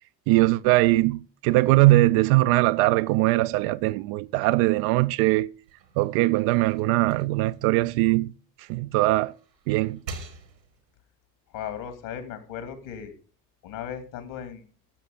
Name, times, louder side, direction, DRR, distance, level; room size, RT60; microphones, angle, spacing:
voice 1, 0.3-5.5 6.0-8.3 8.7-9.3 9.7-10.0, right 19 dB, 50° right, 0.5 m, -21 dB
sound 1, 5.5-8.7 9.2-11.0, right 3 dB, 85° right, 1.9 m, -45 dB
voice 2, 11.5-13.1 13.6-14.6, left 8 dB, 55° left, 2.6 m, -36 dB
13.5 x 7.4 x 5.1 m
figure-of-eight pair, 65°, 49 cm